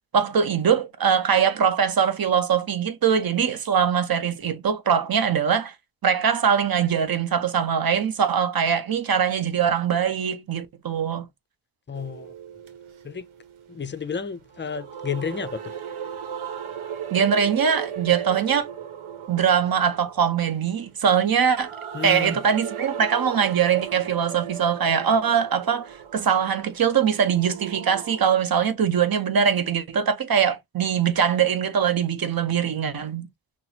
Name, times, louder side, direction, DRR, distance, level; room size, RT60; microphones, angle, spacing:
voice 1, 0.1-5.7 6.0-11.3 17.1-18.7 19.3-21.7 22.0-33.3, right 7 dB, 50° right, 0.8 m, -22 dB
voice 2, 11.9-12.3 13.0-13.3 13.7-15.8 21.9-22.4, left 6 dB, 25° left, 0.5 m, -31 dB
sound 1, 11.9-28.2, right 8 dB, 85° right, 0.9 m, -37 dB
5.9 x 2.1 x 2.8 m
cardioid pair, 80°, 48 cm